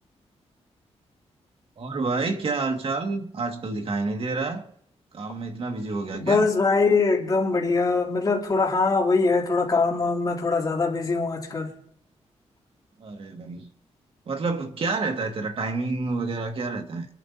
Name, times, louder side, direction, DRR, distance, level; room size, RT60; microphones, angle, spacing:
voice 1, 1.8-4.6 5.1-6.5 13.0-13.7 14.3-17.1, right 3 dB, 55° right, 2.0 m, -29 dB
voice 2, 6.1-11.7, left 4 dB, 35° left, 3.1 m, -22 dB
28.0 x 11.0 x 2.8 m
wide cardioid pair, 130°, 11 cm